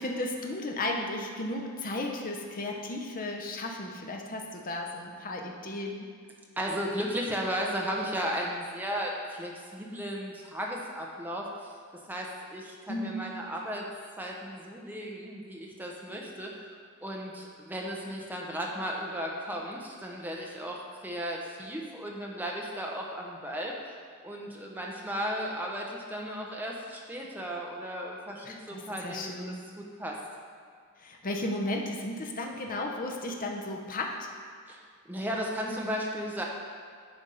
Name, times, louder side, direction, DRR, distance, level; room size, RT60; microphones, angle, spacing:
voice 1, 0.0-6.1 12.9-13.2 28.4-29.6 31.0-34.3, left 2 dB, 40° left, 1 dB, 0.7 m, -34 dB
voice 2, 6.6-11.7 12.1-13.9 14.2-16.7 17.0-23.7 24.2-29.4 29.8-30.2 34.7-36.4, equal, 10° right, -2 dB, 0.8 m, -35 dB
9.4 x 3.5 x 5.5 m, 2.1 s
head